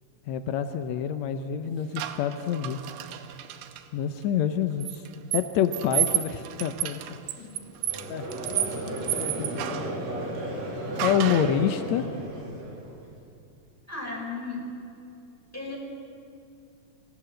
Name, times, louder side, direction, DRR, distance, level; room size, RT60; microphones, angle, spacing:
voice 1, 0.3-2.8 3.9-5.0 5.3-7.2 8.1-8.3 8.5-8.6 9.2-9.8 11.0-12.1, left 9 dB, 90° left, 9 dB, 1.5 m, -27 dB
sound 1, 2.0-3.8 4.8-10.0 11.0-11.6, right 13 dB, 90° right, 2.8 m, -31 dB
voice 2, 7.3-7.8 9.6-9.9 13.9-14.6 15.5-15.8, left 3 dB, 5° left, -3 dB, 5.1 m, -36 dB
Conversation / Crowd, 7.8-13.1, right 1 dB, 45° right, 4.5 m, -34 dB
26.0 x 16.0 x 7.7 m, 2.6 s
omnidirectional pair, 4.2 m